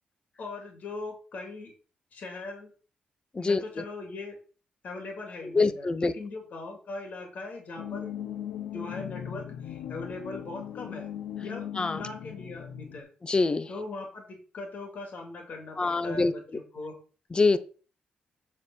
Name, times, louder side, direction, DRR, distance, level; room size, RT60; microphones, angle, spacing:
voice 1, 0.4-1.7 2.1-2.7 3.4-4.4 4.8-8.1 8.7-11.1 11.4-13.1 13.7-16.9, left 3 dB, 60° left, 2 dB, 3.0 m, -40 dB
voice 2, 3.3-3.8 5.4-6.1 11.8-12.0 13.2-13.7 15.8-16.3 17.3-17.6, left 3 dB, 30° left, 13 dB, 0.9 m, -25 dB
sound 1, 7.8-13.0, left 10 dB, 90° left, 0.9 m, -38 dB
7.2 x 4.8 x 6.3 m, 0.38 s
supercardioid pair, 65°, 3 cm